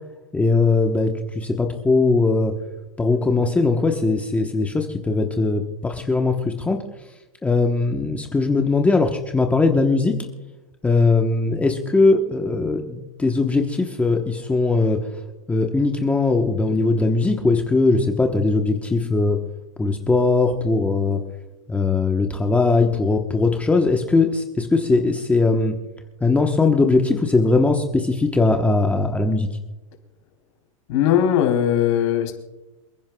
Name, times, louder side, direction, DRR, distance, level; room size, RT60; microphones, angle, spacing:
voice 1, 0.3-2.5 3.0-6.8 7.4-10.1 10.8-15.0 15.5-19.4 19.8-21.2 21.7-25.7 26.2-29.5, left 3 dB, 10° left, 3 dB, 1.1 m, -20 dB
voice 2, 30.9-32.3, left 10 dB, 60° left, 3 dB, 3.8 m, -19 dB
28.5 x 10.5 x 2.3 m, 1.1 s
supercardioid pair, 135°, 17 cm